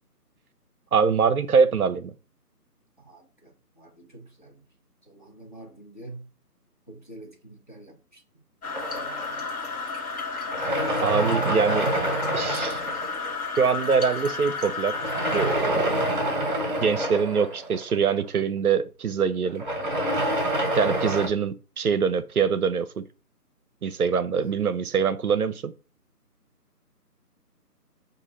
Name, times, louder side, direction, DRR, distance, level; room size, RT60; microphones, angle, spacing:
voice 1, 0.9-2.1 11.0-11.9 12.3-12.8 13.6-15.0 15.3-16.0 16.8-19.6 20.7-23.0 23.8-25.7, right 6 dB, 65° right, 0.5 m, -24 dB
voice 2, 3.0-4.5 5.1-6.3 6.9-8.2 8.6-9.5 24.4-24.5, right 2 dB, 30° left, 0.6 m, -47 dB
sound 1, 8.6-15.6, left 4 dB, 65° left, 1.1 m, -32 dB
sound 2, 8.7-10.0 10.5-13.6 14.9-18.4 19.5-21.3, right 1 dB, 35° right, 0.9 m, -27 dB
4.7 x 2.4 x 3.1 m
figure-of-eight pair, 165°, 48 cm